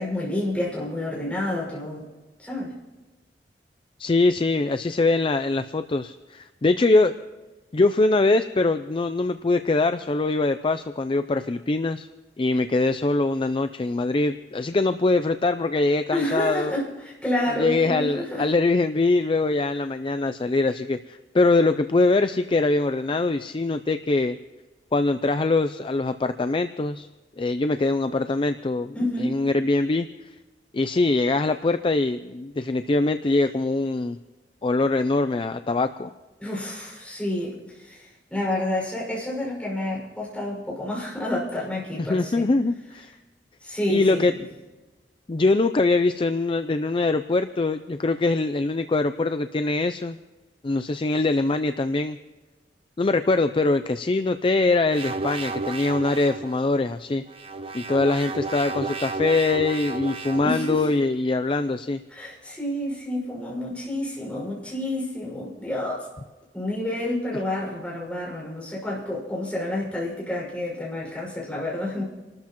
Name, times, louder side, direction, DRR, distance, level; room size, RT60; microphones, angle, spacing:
voice 1, 0.0-2.0 2.4-2.7 16.1-18.5 28.9-29.4 36.4-42.3 43.6-44.3 60.4-60.9 62.1-66.1 66.5-72.0, left 1 dB, 5° left, -4 dB, 5.8 m, -29 dB
voice 2, 4.0-7.2 7.7-12.1 12.4-16.7 17.6-24.4 24.9-27.1 27.4-28.9 29.2-30.1 30.7-34.2 34.6-36.1 42.0-43.1 43.9-44.3 45.3-50.2 50.6-52.2 53.0-57.2 57.7-62.0, left 3 dB, 30° left, 10 dB, 0.4 m, -23 dB
sound 1, 54.9-56.5 57.3-60.9, right 3 dB, 35° right, 0.8 m, -32 dB
28.0 x 13.0 x 3.0 m, 1.2 s
head